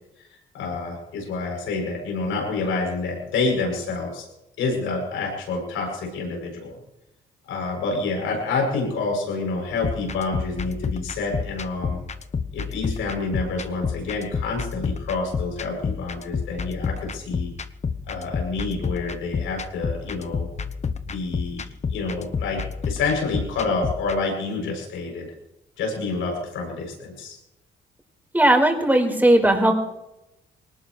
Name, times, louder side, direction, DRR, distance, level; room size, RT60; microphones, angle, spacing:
voice 1, 0.5-4.3 4.6-6.8 7.5-12.0 12.5-17.5 18.1-20.5 21.1-21.6 21.9-25.3 25.8-27.4, left 3 dB, 90° left, 0 dB, 7.8 m, -28 dB
sound 1, 9.8-24.2, left 5 dB, 35° left, 1.0 m, -30 dB
voice 2, 28.3-29.7, right 1 dB, 10° right, 1 dB, 4.9 m, -17 dB
22.5 x 19.5 x 3.3 m, 0.90 s
cardioid pair, 90°, 20 cm